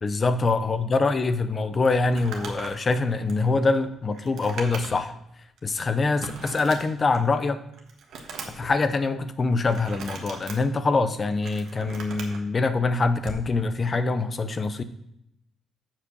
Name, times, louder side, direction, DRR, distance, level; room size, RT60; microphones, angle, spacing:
voice 1, 0.0-5.1 5.6-7.6 8.6-14.8, left 3 dB, 35° left, 11 dB, 0.7 m, -24 dB
Crumpling crinkling, 2.0-5.2 5.6-5.7 6.2-7.3 7.7-8.7 9.7-10.6 11.2-12.4 13.2-13.5, right 4 dB, 70° right, 1.4 m, -39 dB
7.2 x 4.9 x 6.3 m, 0.77 s
cardioid pair, 90°, 0 cm